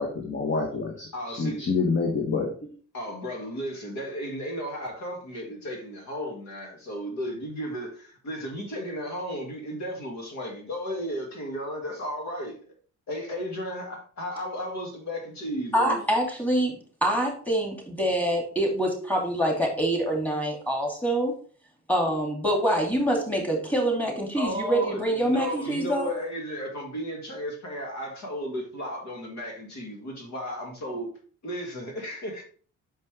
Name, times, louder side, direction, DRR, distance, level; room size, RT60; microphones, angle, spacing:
voice 1, 0.0-2.7, left 4 dB, 40° left, 1.2 m, -27 dB
voice 2, 1.1-1.7 2.9-12.6 13.1-16.1 24.3-31.1 31.4-32.4, equal, 65° left, 2.1 m, -34 dB
voice 3, 15.7-21.3 21.9-26.1, right 1 dB, 5° left, 2.3 m, -25 dB
5.8 x 5.3 x 3.3 m
cardioid pair, 90°, 30 cm